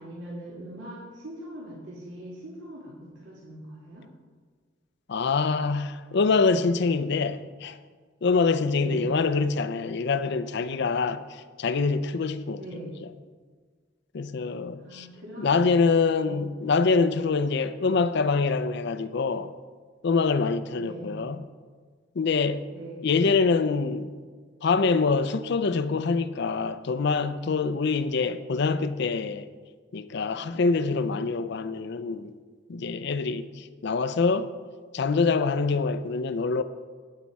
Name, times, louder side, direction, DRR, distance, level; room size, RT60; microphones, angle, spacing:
voice 1, 0.0-4.1 8.8-9.1 12.6-12.9 14.8-16.7 20.8-21.3 22.7-23.1 30.7-31.1, right 1 dB, 75° right, 1.9 m, -41 dB
voice 2, 5.1-7.8 8.2-13.1 14.1-15.1 15.4-19.5 20.0-21.4 22.1-22.7 23.0-24.2 24.6-29.5 29.9-32.3 32.7-34.5 34.9-36.6, left 4 dB, 65° left, 0.5 m, -25 dB
8.8 x 8.3 x 4.6 m
head